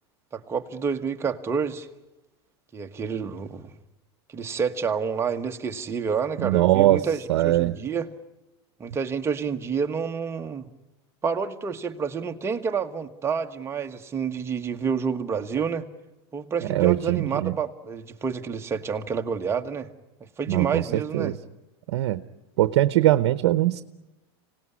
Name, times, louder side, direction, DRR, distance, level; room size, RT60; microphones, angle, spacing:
voice 1, 0.3-1.9 2.7-3.7 4.3-8.1 8.8-10.7 11.2-15.9 16.3-19.9 20.4-21.3, right 6 dB, 20° right, 5 dB, 1.4 m, -29 dB
voice 2, 6.4-7.0 7.3-7.7 16.7-17.5 20.5-21.4 21.9-22.2 22.6-23.8, right 15 dB, 75° right, 13 dB, 0.9 m, -21 dB
26.0 x 18.5 x 9.8 m, 1.0 s
supercardioid pair, 135°, 14 cm